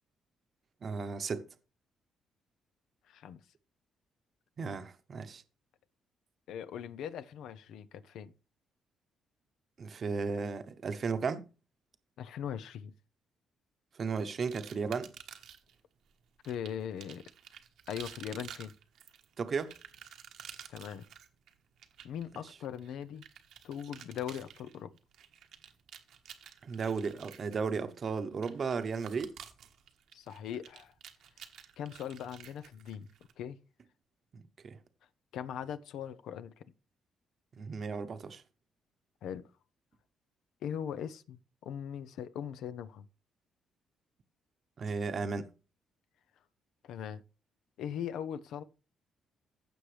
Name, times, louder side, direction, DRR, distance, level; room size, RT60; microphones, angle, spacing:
voice 1, 0.8-1.4 4.6-5.4 9.8-11.4 14.0-15.1 19.4-19.7 22.3-22.4 26.6-29.3 34.3-34.8 37.6-38.4 44.8-45.5, right 5 dB, 45° right, 1.0 m, -35 dB
voice 2, 3.1-3.4 6.5-8.3 12.2-12.9 16.4-17.2 17.9-18.7 20.7-21.0 22.0-23.2 23.6-24.9 30.1-30.9 31.8-33.1 33.4-33.6 35.3-36.6 39.2-39.5 40.6-43.0 46.8-47.2 47.8-48.6, left 9 dB, 80° left, 0.7 m, -40 dB
sound 1, 14.5-15.8 16.4-33.3, right 9 dB, 80° right, 1.4 m, -51 dB
15.5 x 6.2 x 3.3 m
cardioid pair, 90°, 0 cm